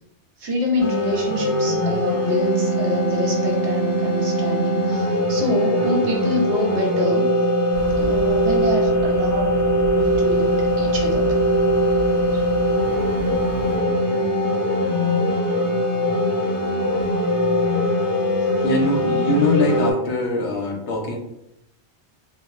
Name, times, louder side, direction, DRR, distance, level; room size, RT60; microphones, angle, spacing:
voice 1, 0.4-7.3 8.0-11.3, left 1 dB, 80° right, -1 dB, 1.1 m, -26 dB
sound 1, 0.8-19.9, equal, 40° left, 0.4 m, -21 dB
sound 2, 7.7-13.8, equal, 15° right, 0.7 m, -34 dB
voice 2, 18.6-21.2, left 1 dB, 75° left, -1 dB, 0.9 m, -23 dB
3.7 x 2.0 x 2.4 m, 0.82 s
omnidirectional pair, 1.2 m